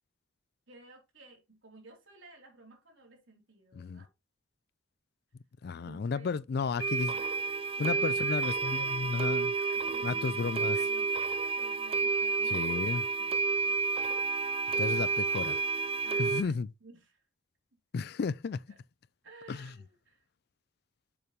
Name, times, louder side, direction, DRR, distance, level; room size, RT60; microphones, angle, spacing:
voice 1, 0.7-4.1 5.7-7.3 7.8-14.4 14.7-15.1 16.0-17.2 18.7-18.8 19.2-20.3, right 2 dB, 80° right, 2.9 m, -55 dB
voice 2, 3.7-4.0 5.6-7.1 7.8-9.5 10.0-10.8 12.5-13.0 14.8-15.6 16.2-16.7 17.9-18.6 19.5-19.7, left 5 dB, 55° left, 0.4 m, -33 dB
sound 1, 6.8-16.4, right 4 dB, 30° right, 0.4 m, -30 dB
6.9 x 5.3 x 3.1 m
head